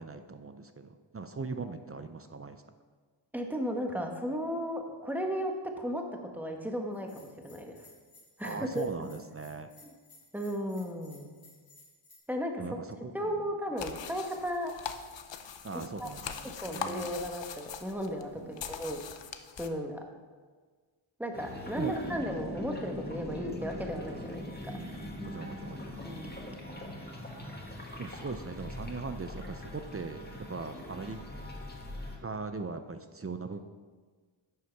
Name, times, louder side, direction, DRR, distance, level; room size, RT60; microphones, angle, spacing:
voice 1, 0.0-2.6 8.4-9.7 12.6-13.5 15.6-17.1 18.4-18.7 21.7-22.5 24.7-26.0 28.0-31.2 32.2-33.6, right 4 dB, 30° right, 9 dB, 0.5 m, -40 dB
voice 2, 3.3-6.0 6.3-7.7 8.4-9.1 10.3-11.3 12.3-12.5 13.1-14.7 16.0-16.1 16.4-19.0 19.6-20.0 21.2-24.7 26.0-26.5, equal, 5° right, 2 dB, 1.3 m, -35 dB
Bell, 6.9-12.2, left 3 dB, 85° left, 3.2 m, -58 dB
sound 1, 13.8-19.7, left 7 dB, 60° left, 0.7 m, -42 dB
sound 2, 21.3-32.2, left 1 dB, 20° left, 1.8 m, -42 dB
10.5 x 6.5 x 4.6 m, 1.5 s
wide cardioid pair, 75°, 49 cm